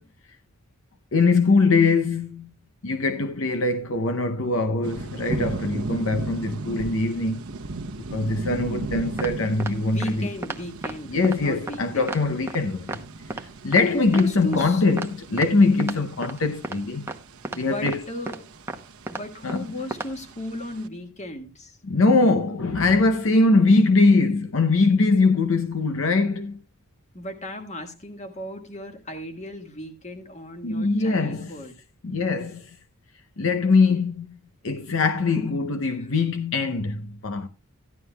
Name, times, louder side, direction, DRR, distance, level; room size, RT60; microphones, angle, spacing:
voice 1, 1.1-2.5 2.8-7.4 8.0-10.3 11.1-13.0 13.3-17.1 17.5-18.0 19.4-19.6 21.8-26.6 30.6-31.6 32.0-32.7 33.4-34.3 34.6-37.5, left 3 dB, 65° left, 0.7 m, -22 dB
sound 1, 4.8-20.9, right 3 dB, 90° right, 0.9 m, -37 dB
sound 2, 9.2-9.3 9.6-9.7 10.0-10.1 10.4-10.6 10.8-10.9 11.2-11.4 11.7-11.8 12.1-12.2 12.5-12.6 12.9-13.0 13.3-13.4 13.7-13.8 14.1-14.2 14.5-14.7 15.0-15.1 15.4-15.5 15.8-16.0 16.2-16.4 16.6-16.8 17.1-17.2 17.4-17.6 17.9-18.0 18.3-18.4 18.7-18.8 19.1-19.2 19.5-19.6 19.9-20.1, right 2 dB, 10° right, 0.8 m, -32 dB
voice 2, 9.9-11.1 11.4-12.1 13.9-14.8 17.5-18.5 19.1-21.7 27.1-31.8 33.6-34.0 35.4-35.5, left 1 dB, 35° left, 1.6 m, -35 dB
14.5 x 11.5 x 2.3 m
head